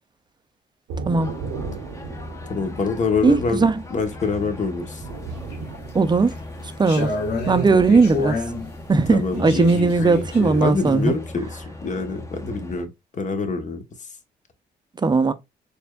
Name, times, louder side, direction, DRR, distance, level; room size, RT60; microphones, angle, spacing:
Thunder / Rain, 0.9-10.9, right 4 dB, 90° right, 0.7 m, -38 dB
sound 1, 1.2-12.8, left 2 dB, 15° left, 0.9 m, -38 dB
voice 1, 2.5-3.6 3.9-5.0 7.7-7.8 9.1-9.9 10.6-13.8, left 4 dB, 40° left, 1.1 m, -26 dB
voice 2, 3.2-3.8 5.9-6.3 6.8-7.1 7.5-8.4 8.9-11.1 15.0-15.3, right 4 dB, 25° right, 0.5 m, -18 dB
sound 2, 5.1-5.8 6.3-8.7 9.3-10.7, left 2 dB, 60° left, 1.4 m, -28 dB
4.3 x 3.3 x 2.3 m
cardioid pair, 80°, 19 cm